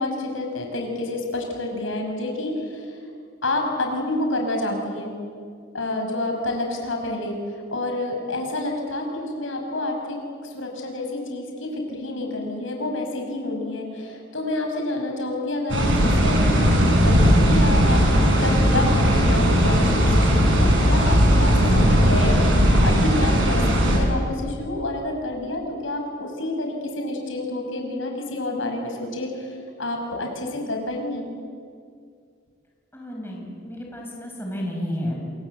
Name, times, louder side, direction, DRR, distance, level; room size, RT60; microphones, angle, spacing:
voice 1, 0.0-3.0 3.4-5.1 5.7-10.2 10.4-31.3, left 2 dB, 75° left, 2 dB, 6.0 m, -29 dB
sound 1, 15.7-24.0, equal, 70° right, 7.0 m, -18 dB
voice 2, 32.9-35.2, equal, 10° left, -1 dB, 5.2 m, -31 dB
28.0 x 26.5 x 7.9 m, 2.3 s
head